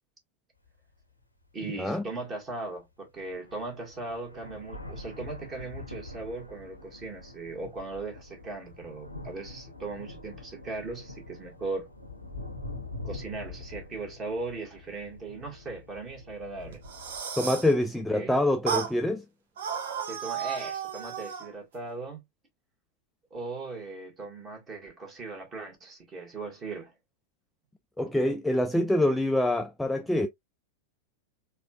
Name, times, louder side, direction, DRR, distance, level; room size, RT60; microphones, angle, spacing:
sound 1, 0.7-0.8 1.4-1.5 2.8-2.9 3.2-17.2, left 2 dB, 90° left, 0.7 m, -44 dB
voice 1, 1.5-11.9 13.0-16.8 18.1-18.3 20.0-22.2 23.3-26.9, right 3 dB, 25° right, 1.5 m, -38 dB
sound 2, 16.7-17.7 18.7-18.9 19.6-21.5, right 8 dB, 60° right, 0.8 m, -33 dB
voice 2, 17.4-19.2 28.0-30.3, left 1 dB, 5° left, 0.3 m, -25 dB
4.1 x 2.4 x 2.3 m
figure-of-eight pair, 90°, 0 cm